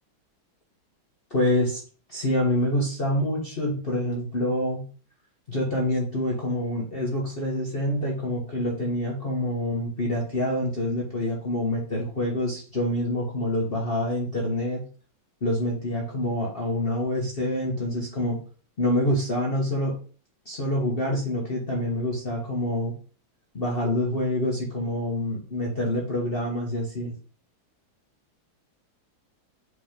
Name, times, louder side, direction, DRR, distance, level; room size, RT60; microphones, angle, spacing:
voice 1, 1.3-1.8 2.1-4.8 5.5-14.8 15.4-18.4 18.8-19.9 20.4-22.9 23.5-27.1, left 1 dB, 30° left, -3 dB, 1.3 m, -26 dB
5.0 x 4.2 x 5.1 m, 0.40 s
omnidirectional pair, 2.2 m